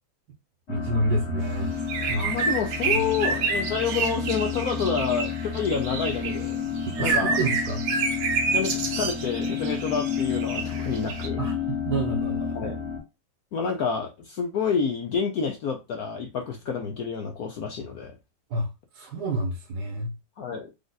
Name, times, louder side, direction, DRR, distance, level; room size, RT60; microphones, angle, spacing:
sound 1, 0.7-13.0, left 6 dB, 40° left, 1.3 m, -31 dB
voice 1, 0.7-1.7 2.1-2.3 2.8-3.0 6.9-7.8 11.4-12.6 18.5-20.1, right 1 dB, 60° right, 1.3 m, -29 dB
sound 2, 1.8-6.5 6.8-11.3, right 5 dB, 75° right, 1.8 m, -29 dB
voice 2, 2.1-6.6 7.0-7.4 8.5-11.4 12.5-12.8 13.5-18.2 20.4-20.7, left 6 dB, 65° left, 1.0 m, -28 dB
5.1 x 2.4 x 4.0 m
omnidirectional pair, 2.1 m